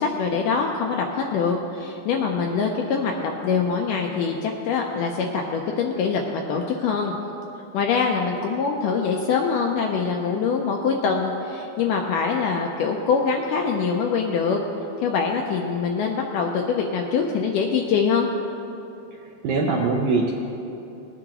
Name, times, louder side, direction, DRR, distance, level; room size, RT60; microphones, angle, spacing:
voice 1, 0.0-7.1 7.7-14.6 15.0-18.3, left 5 dB, 80° left, 1 dB, 1.9 m, -24 dB
voice 2, 19.2-20.3, right 3 dB, 75° right, -1 dB, 1.8 m, -23 dB
19.5 x 9.8 x 3.0 m, 2.9 s
omnidirectional pair, 4.4 m